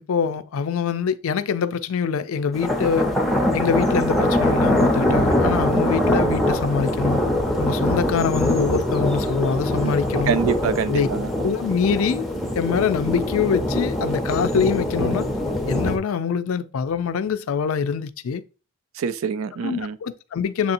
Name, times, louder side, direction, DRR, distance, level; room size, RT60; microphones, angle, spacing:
voice 1, 0.1-3.1 3.5-7.2 7.6-10.3 10.9-11.1 11.4-12.3 12.6-15.3 15.7-18.4 19.6-20.7, left 6 dB, 80° left, 0.4 m, -24 dB
sound 1, 2.5-16.0, left 1 dB, ahead, 0.5 m, -23 dB
voice 2, 10.3-11.3 18.9-20.0, right 6 dB, 75° right, 0.4 m, -25 dB
7.1 x 2.8 x 2.5 m
head